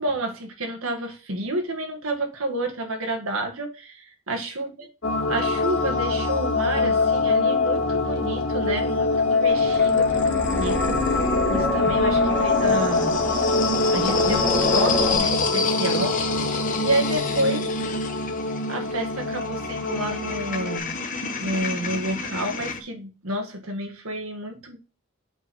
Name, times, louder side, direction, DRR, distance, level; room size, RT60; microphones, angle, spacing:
voice 1, 0.0-4.9 5.3-11.2 11.5-13.1 13.9-16.2 16.8-17.6 18.7-20.9 21.4-24.8, right 1 dB, 70° right, 1.9 m, -29 dB
sound 1, 5.0-20.8, left 3 dB, 60° left, 2.0 m, -24 dB
sound 2, 9.1-11.5 12.4-22.8, left 5 dB, 35° left, 1.0 m, -30 dB
sound 3, 9.4-15.2, left 1 dB, 10° left, 1.3 m, -28 dB
7.9 x 4.4 x 4.6 m
head